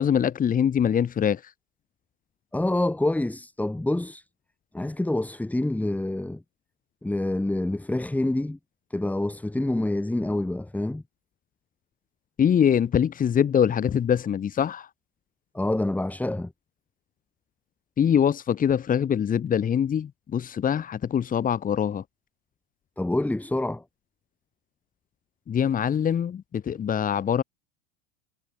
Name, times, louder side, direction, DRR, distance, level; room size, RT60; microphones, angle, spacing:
voice 1, 0.0-1.4 12.4-14.9 18.0-22.0 25.5-27.4, left 8 dB, 25° left, 4.2 m, -23 dB
voice 2, 2.5-4.2 4.7-6.4 7.0-8.6 8.9-11.0 15.5-16.5 23.0-23.8, left 1 dB, 5° left, 6.5 m, -27 dB
supercardioid pair, 130°, 33 cm